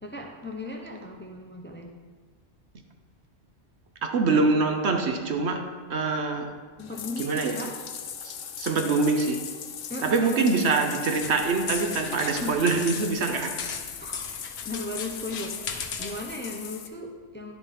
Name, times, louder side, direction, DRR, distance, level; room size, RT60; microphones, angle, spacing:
voice 1, 0.0-1.9 6.8-7.7 9.9-10.4 12.4-12.5 14.0-14.2 14.6-17.5, left 2 dB, 10° left, 0.6 m, -36 dB
voice 2, 4.0-6.5 7.2-7.6 8.2-9.4 10.0-13.6, right 3 dB, 65° right, 1.1 m, -25 dB
Bathtub (filling or washing), 6.8-16.9, left 8 dB, 85° left, 1.1 m, -39 dB
sound 1, 11.1-16.3, left 6 dB, 60° left, 1.0 m, -37 dB
10.5 x 7.3 x 4.2 m
omnidirectional pair, 1.3 m